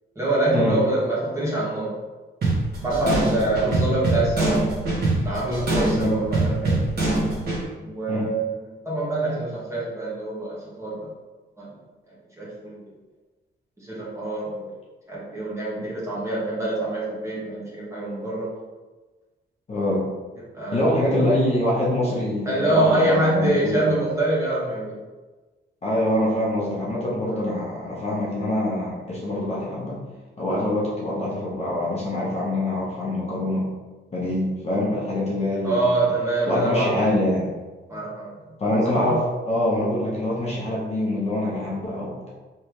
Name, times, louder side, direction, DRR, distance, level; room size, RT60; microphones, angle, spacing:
voice 1, 0.1-1.9 2.8-4.6 5.2-6.8 7.8-11.1 11.6-11.7 12.4-12.7 13.8-14.7 15.1-18.5 20.5-20.9 22.4-25.0 27.3-27.5 35.6-37.2 37.9-38.3 39.0-39.2, right 2 dB, 15° right, -8 dB, 1.4 m, -25 dB
sound 1, 2.4-7.6, right 2 dB, 60° right, 1.4 m, -24 dB
voice 2, 19.7-20.0 20.7-23.9 25.8-30.0 30.4-33.6 34.1-35.8 36.4-37.5 38.6-42.3, left 1 dB, 35° left, -6 dB, 1.1 m, -24 dB
3.5 x 3.2 x 3.1 m, 1.2 s
cardioid pair, 110°, 19 cm